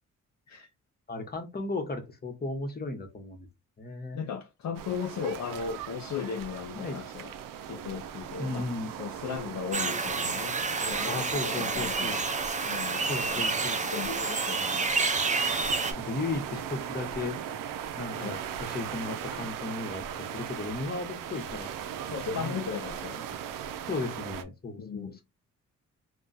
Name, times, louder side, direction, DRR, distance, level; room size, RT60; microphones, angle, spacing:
voice 1, 1.1-3.5 3.8-4.2 6.7-7.0 8.4-9.0 11.1-12.2 13.1-13.8 16.0-17.4 18.0-21.7 22.3-22.6 23.9-25.2, left 3 dB, 30° left, 1.0 m, -35 dB
voice 2, 4.1-7.4 7.7-8.7 9.0-12.2 12.6-13.4 13.8-14.9 18.1-18.4 22.0-23.4 24.8-25.2, left 6 dB, 60° left, 0.5 m, -37 dB
sound 1, 4.7-24.4, right 9 dB, 85° right, 0.5 m, -39 dB
sound 2, 9.7-15.9, right 4 dB, 25° right, 0.5 m, -29 dB
2.3 x 2.2 x 3.9 m
cardioid pair, 80°, 32 cm